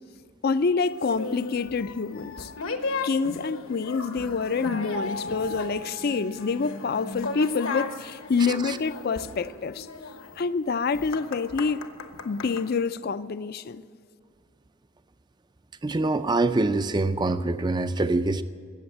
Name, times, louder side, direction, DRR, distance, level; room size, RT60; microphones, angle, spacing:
voice 1, 0.4-2.5 3.0-9.9 10.4-11.8 12.2-13.8, left 5 dB, 45° left, 0.4 m, -27 dB
sound 1, 1.0-12.7, left 3 dB, 75° left, 1.2 m, -36 dB
Mallet percussion, 4.9-6.9, left 1 dB, 85° right, 4.3 m, -38 dB
voice 2, 15.8-18.4, right 2 dB, 20° right, 0.4 m, -25 dB
14.0 x 8.7 x 9.1 m
head